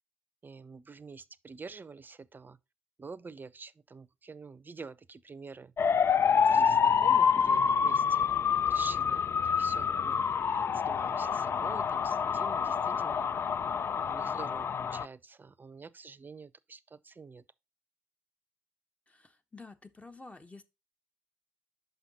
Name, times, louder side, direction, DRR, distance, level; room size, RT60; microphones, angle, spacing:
voice 1, 0.4-2.6 3.0-5.7 6.3-13.3 13.9-17.4, right 4 dB, 35° right, 0.6 m, -47 dB
sound 1, 5.8-15.1, left 6 dB, 45° left, 0.3 m, -27 dB
voice 2, 19.1-20.6, left 3 dB, 20° left, 1.2 m, -50 dB
5.8 x 5.5 x 4.1 m
hypercardioid pair, 40°, 6 cm